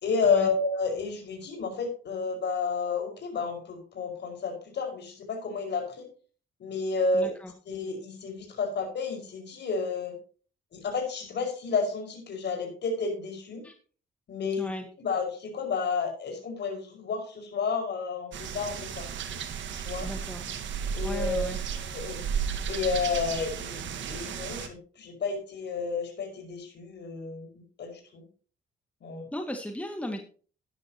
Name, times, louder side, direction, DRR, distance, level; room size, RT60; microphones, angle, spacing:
voice 1, 0.0-6.1 6.6-7.3 7.7-10.1 10.7-13.6 14.3-14.7 15.0-19.1 19.7-20.1 20.9-21.5 21.8-22.2 22.7-27.5 27.8-28.2 29.0-29.3, left 4 dB, 60° left, 3 dB, 5.5 m, -31 dB
voice 2, 7.1-7.5 13.6-13.7 14.6-14.9 20.0-20.5 21.0-21.6 29.3-30.2, equal, 5° left, 4 dB, 2.1 m, -36 dB
sound 1, 18.3-24.7, right 7 dB, 70° right, 1.8 m, -34 dB
13.0 x 11.0 x 3.0 m, 0.39 s
cardioid pair, 90°, 20 cm